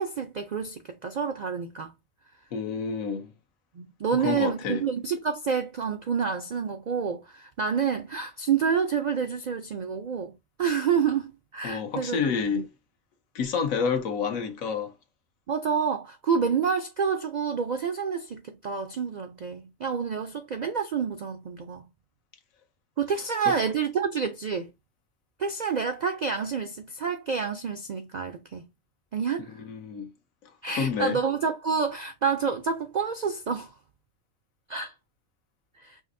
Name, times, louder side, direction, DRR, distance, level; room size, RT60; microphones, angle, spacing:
voice 1, 0.0-1.9 3.8-10.3 10.6-12.2 12.5-12.7 15.5-21.9 23.0-24.7 25.4-28.7 29.1-29.5 30.6-33.7 34.7-34.9 35.8-36.0, right 6 dB, 70° right, 0.4 m, -28 dB
voice 2, 2.5-3.3 4.2-4.8 11.6-12.6 13.3-14.9 23.4-23.6 29.6-30.1 30.7-31.2, left 6 dB, 85° left, 1.3 m, -28 dB
5.1 x 2.9 x 2.6 m
omnidirectional pair, 1.4 m